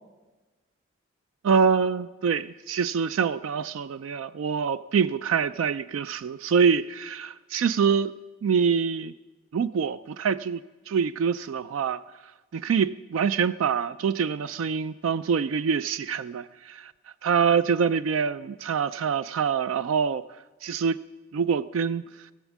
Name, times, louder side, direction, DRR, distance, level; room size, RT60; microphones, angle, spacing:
voice 1, 1.4-8.1 8.4-9.1 9.5-12.0 12.5-16.9 17.2-20.2 20.6-21.0 21.3-22.0, right 6 dB, 75° right, 15 dB, 0.3 m, -25 dB
18.0 x 7.2 x 7.3 m, 1.2 s
head